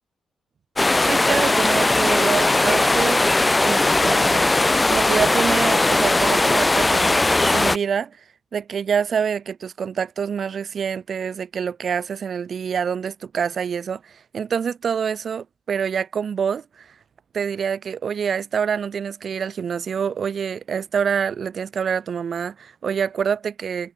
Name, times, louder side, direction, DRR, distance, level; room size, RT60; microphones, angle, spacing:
sound 1, 0.8-7.8, left 2 dB, 20° left, 0.4 m, -18 dB
voice 1, 1.0-3.3 3.6-4.5 4.9-7.2 7.5-8.2 8.5-16.9 17.3-23.9, right 7 dB, 60° right, 0.5 m, -26 dB
cardioid pair, 80°, 0 cm